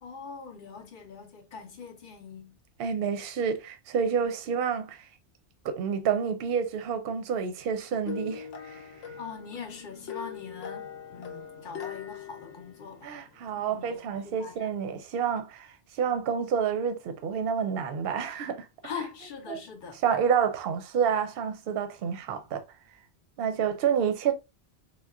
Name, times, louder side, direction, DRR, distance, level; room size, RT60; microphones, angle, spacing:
voice 1, 0.0-2.6 9.2-13.1 13.5-14.7 18.8-20.0, left 5 dB, 55° left, 0.8 m, -42 dB
voice 2, 2.8-5.0 5.6-8.8 13.0-18.7 19.5-19.6 20.0-22.6 23.4-24.3, right 7 dB, 65° right, 0.7 m, -29 dB
sound 1, 8.0-13.5, left 7 dB, 85° left, 0.9 m, -41 dB
3.6 x 2.1 x 2.3 m
omnidirectional pair, 1.2 m